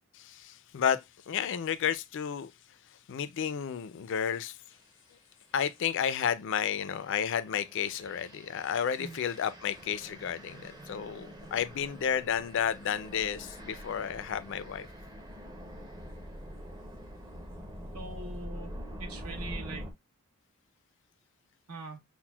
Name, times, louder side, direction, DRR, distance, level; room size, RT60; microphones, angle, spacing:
voice 1, 0.1-2.5 3.1-4.6 5.5-14.9, left 8 dB, 55° left, 0.3 m, -32 dB
sound 1, 4.7-4.9 5.5-19.9, equal, 20° right, 0.5 m, -45 dB
voice 2, 17.9-18.7 19.0-19.9 21.7-22.0, right 3 dB, 85° right, 1.1 m, -42 dB
5.9 x 2.1 x 2.2 m
head